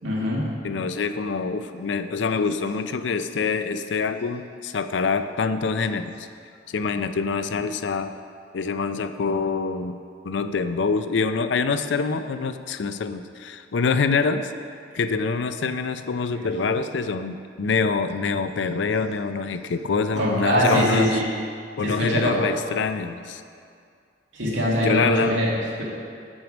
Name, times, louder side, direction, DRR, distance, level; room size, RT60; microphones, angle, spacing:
voice 1, 0.0-0.5 20.1-21.3 21.8-22.4 24.3-25.8, equal, 85° right, -5 dB, 2.3 m, -23 dB
voice 2, 0.6-6.3 6.7-8.1 8.5-10.0 10.2-14.5 14.9-21.2 21.8-23.4 24.8-25.4, left 4 dB, 75° left, 10 dB, 0.5 m, -25 dB
8.6 x 6.3 x 6.1 m, 2.3 s
head